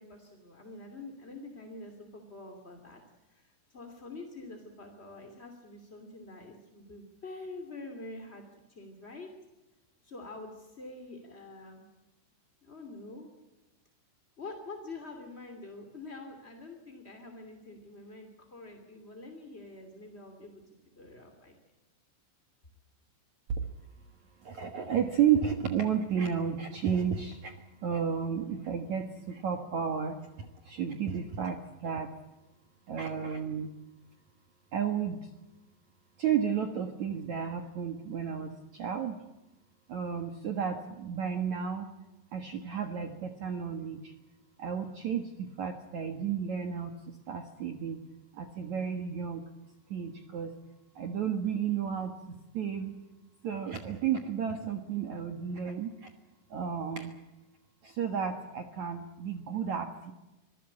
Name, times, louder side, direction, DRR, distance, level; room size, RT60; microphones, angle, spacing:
voice 1, 0.0-3.0 3.3-8.4 8.7-9.3 10.0-11.9 12.6-13.3 14.4-20.6 21.0-21.6, left 2 dB, 20° left, 4 dB, 1.8 m, -46 dB
voice 2, 24.4-27.5 27.8-32.1 32.9-33.7 34.7-35.3 36.2-39.2 39.9-41.9 42.3-44.1 44.6-48.0 48.3-49.4 49.9-50.5 50.9-52.9 53.4-56.1 56.5-57.1 57.8-60.1, right 7 dB, 70° right, 6 dB, 1.7 m, -32 dB
25.5 x 17.0 x 8.5 m, 1.1 s
omnidirectional pair, 5.7 m